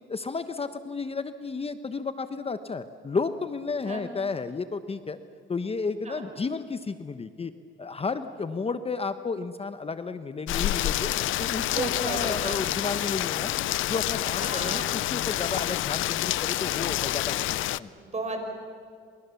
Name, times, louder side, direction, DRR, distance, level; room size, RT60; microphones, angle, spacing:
voice 1, 0.1-5.2 5.5-7.5 7.8-11.1 11.4-13.5 13.8-17.9, left 4 dB, 30° left, 11 dB, 1.0 m, -32 dB
Rain, 10.5-17.8, left 15 dB, 80° left, 0.6 m, -28 dB
voice 2, 11.6-12.6 14.4-14.9 18.0-18.4, right 3 dB, 35° right, 4 dB, 5.9 m, -34 dB
28.5 x 26.5 x 7.1 m, 2.3 s
cardioid pair, 90°, 20 cm